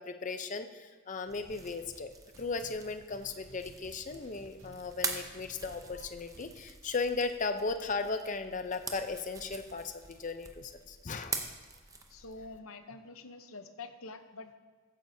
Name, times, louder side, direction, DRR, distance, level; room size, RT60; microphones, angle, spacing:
voice 1, 0.0-2.1 2.4-11.4, left 4 dB, 35° left, 8 dB, 0.6 m, -36 dB
sound 1, 1.2-6.5, equal, 60° right, 2.2 m, -57 dB
sound 2, 1.3-12.5, right 4 dB, 15° right, 0.7 m, -44 dB
voice 2, 12.1-14.6, left 3 dB, 75° left, 9 dB, 0.8 m, -46 dB
15.0 x 9.3 x 2.7 m, 1.5 s
head